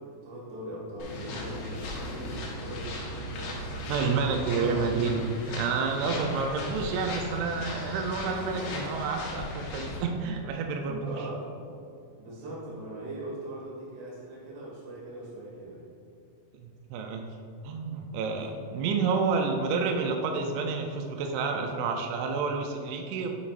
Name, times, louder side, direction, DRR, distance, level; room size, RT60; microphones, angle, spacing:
voice 1, 0.0-4.2 8.3-8.4 10.9-11.5 12.2-15.9 18.6-18.7, right 1 dB, 60° right, -5 dB, 3.7 m, -41 dB
sound 1, 1.0-10.0, left 1 dB, 85° left, 3.8 m, -37 dB
voice 2, 3.9-11.1 16.6-17.3 17.6-23.3, right 4 dB, 85° right, 3 dB, 2.6 m, -29 dB
10.5 x 6.6 x 2.5 m, 2.5 s
omnidirectional pair, 5.7 m